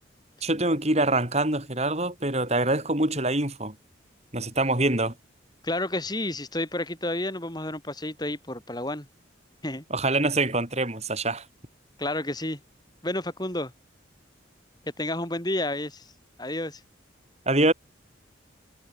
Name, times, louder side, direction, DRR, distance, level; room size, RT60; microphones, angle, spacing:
voice 1, 0.4-3.8 4.3-5.1 9.9-11.4 17.5-17.7, right 2 dB, 35° right, 4.6 m, -24 dB
voice 2, 5.6-9.1 9.6-9.8 12.0-12.6 13.0-13.7 15.0-16.1 16.4-16.8, left 1 dB, 20° left, 3.6 m, -30 dB
head